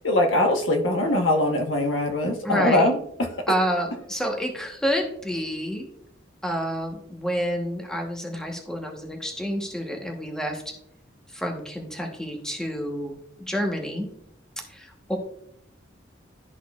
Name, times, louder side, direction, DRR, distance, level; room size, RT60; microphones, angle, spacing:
voice 1, 0.0-3.3, left 1 dB, 85° left, 4 dB, 1.0 m, -22 dB
voice 2, 2.4-2.9 3.5-5.9 6.4-10.6 11.3-14.1 14.7-15.2, equal, 5° left, 2 dB, 1.0 m, -29 dB
12.5 x 4.2 x 2.3 m, 0.71 s
head